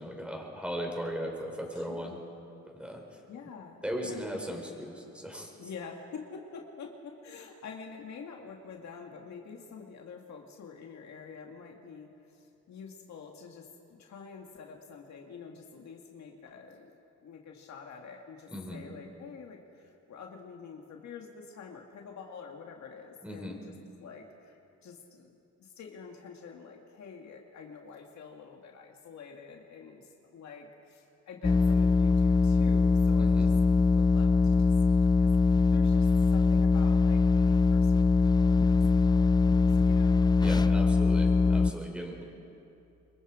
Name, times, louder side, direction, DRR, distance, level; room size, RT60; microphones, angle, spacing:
voice 1, 0.0-2.2 2.7-3.0 3.8-5.5 18.5-18.8 23.2-23.6 33.2-33.5 40.4-42.2, equal, 5° right, 0 dB, 5.2 m, -37 dB
voice 2, 1.8-2.2 2.8-2.9 3.3-4.8 5.6-16.9 17.2-23.7 24.0-25.3 25.6-33.5 33.8-40.3, left 5 dB, 65° left, 2 dB, 2.1 m, -47 dB
sound 1, 31.4-41.7, left 4 dB, 15° left, 0.4 m, -22 dB
27.0 x 23.0 x 5.0 m, 2.7 s
cardioid pair, 90°, 30 cm